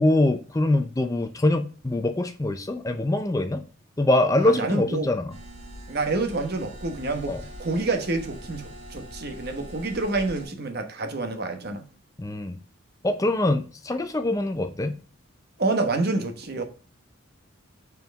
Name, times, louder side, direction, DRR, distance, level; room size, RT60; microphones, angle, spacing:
voice 1, 0.0-3.6 4.0-5.3 7.3-7.4 12.2-12.6 13.0-15.0, left 1 dB, 15° left, 0.5 m, -23 dB
voice 2, 4.4-5.1 5.9-7.3 7.6-11.9 15.6-16.6, right 3 dB, 50° right, 1.2 m, -28 dB
sound 1, 5.3-10.5, equal, 30° right, 3.4 m, -42 dB
5.8 x 4.6 x 5.1 m
head